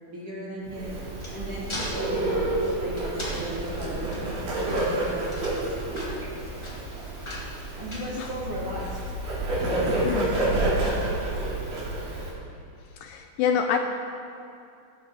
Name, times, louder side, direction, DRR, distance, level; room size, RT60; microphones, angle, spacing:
voice 1, 0.1-0.9 1.3-7.0 7.7-9.0 9.5-10.7, right 1 dB, 45° right, -6 dB, 2.1 m, -37 dB
sound 1, 0.6-8.8, left 1 dB, 20° left, 0.8 m, -41 dB
Bird, 0.7-12.3, right 2 dB, 70° right, 4.2 m, -29 dB
voice 2, 10.0-10.4 13.0-13.8, left 7 dB, 80° left, 5 dB, 2.1 m, -26 dB
17.5 x 7.4 x 4.8 m, 2.6 s
omnidirectional pair, 4.2 m